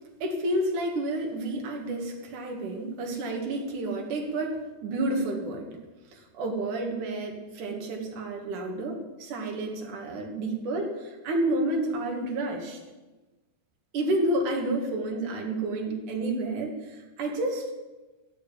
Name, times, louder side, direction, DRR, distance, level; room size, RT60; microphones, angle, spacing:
voice 1, 0.2-5.8 6.1-12.8 13.9-17.7, right 1 dB, 75° right, 1 dB, 3.4 m, -30 dB
14.5 x 7.2 x 10.0 m, 1.2 s
omnidirectional pair, 3.6 m